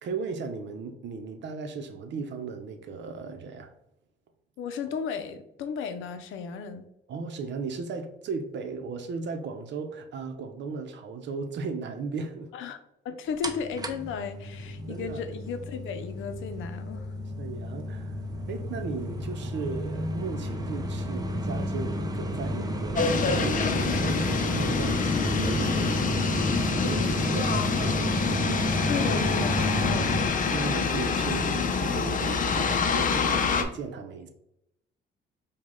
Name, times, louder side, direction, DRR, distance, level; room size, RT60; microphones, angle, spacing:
voice 1, 0.0-3.7 7.1-12.5 14.9-15.2 17.4-18.2 18.5-26.0 26.8-28.2 29.9-30.0 30.5-34.3, right 5 dB, 65° right, 0.7 m, -36 dB
voice 2, 4.6-6.8 12.5-12.8 13.0-17.1 28.9-30.4, left 6 dB, 85° left, 0.6 m, -34 dB
sound 1, 13.4-30.3, equal, 20° right, 0.6 m, -31 dB
sound 2, 23.0-33.6, left 5 dB, 40° left, 0.6 m, -27 dB
5.1 x 2.3 x 3.7 m
cardioid pair, 90°, 20 cm